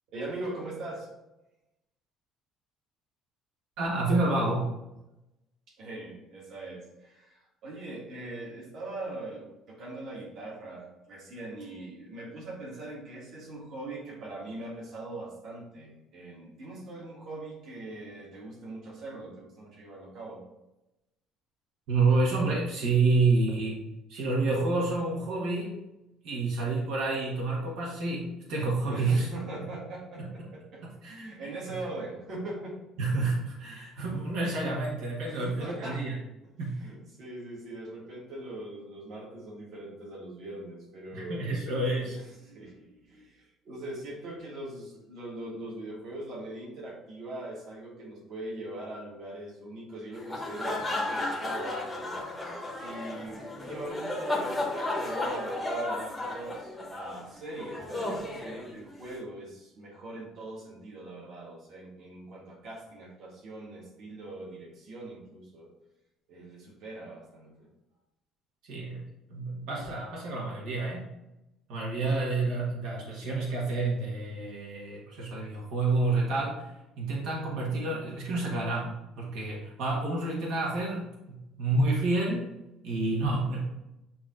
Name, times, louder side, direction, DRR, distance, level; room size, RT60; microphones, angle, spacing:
voice 1, 0.1-1.1 5.7-20.4 28.9-32.8 33.7-33.8 35.2-36.0 36.7-41.4 42.1-52.2 52.8-65.7 66.3-67.7, right 2 dB, 45° right, -3 dB, 1.8 m, -41 dB
voice 2, 3.8-4.8 21.9-23.8 24.1-25.8 26.2-29.3 30.2-30.5 31.0-31.3 33.0-36.2 36.6-36.8 41.1-42.2 68.6-71.0 71.7-76.7 77.0-82.5 82.8-83.6, right 3 dB, 75° right, -3 dB, 1.5 m, -29 dB
sound 1, 50.1-59.2, left 2 dB, 5° left, 0.9 m, -34 dB
8.6 x 3.0 x 3.9 m, 0.93 s
cardioid pair, 180°, 0 cm